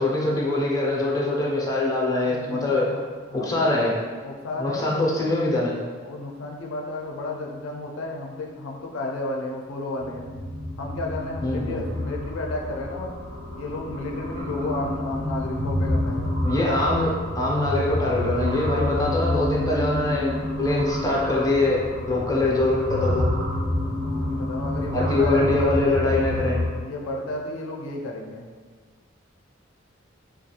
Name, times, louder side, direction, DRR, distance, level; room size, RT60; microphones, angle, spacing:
voice 1, 0.0-2.9 3.3-3.9 4.6-5.7 11.4-11.8 16.4-21.8 22.1-23.3 24.9-26.6, left 2 dB, 20° left, -4 dB, 0.4 m, -23 dB
voice 2, 2.2-3.0 3.3-3.7 4.2-4.9 6.0-10.3 10.8-13.1 13.5-16.3 22.0-22.4 24.0-25.5 26.8-28.5, left 2 dB, 90° left, 0 dB, 0.4 m, -32 dB
sound 1, 10.0-26.7, left 1 dB, 40° right, 0.5 m, -28 dB
2.3 x 2.3 x 2.7 m, 1.5 s
head